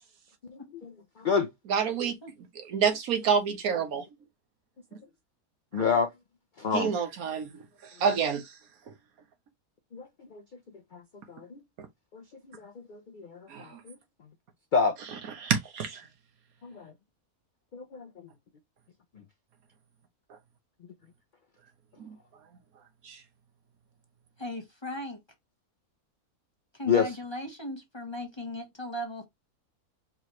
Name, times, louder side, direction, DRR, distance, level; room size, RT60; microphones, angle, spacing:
voice 1, 0.5-1.5 5.7-6.1 6.6-6.9 9.9-10.4 10.9-11.0 11.3-11.6 12.1-12.2 12.5-13.9 14.7-14.9 16.6-16.9 17.7-18.1 26.8-27.1, left 5 dB, 80° left, 0.4 m, -29 dB
voice 2, 1.7-2.2 2.5-4.0 6.7-7.6 8.0-8.4 11.8-11.9 13.5-13.8 15.4-16.0 22.0-22.1 23.0-23.2, right 6 dB, 75° right, 1.4 m, -28 dB
voice 3, 24.4-25.2 26.8-29.2, equal, 20° left, 1.0 m, -37 dB
4.7 x 3.0 x 3.0 m
omnidirectional pair, 1.6 m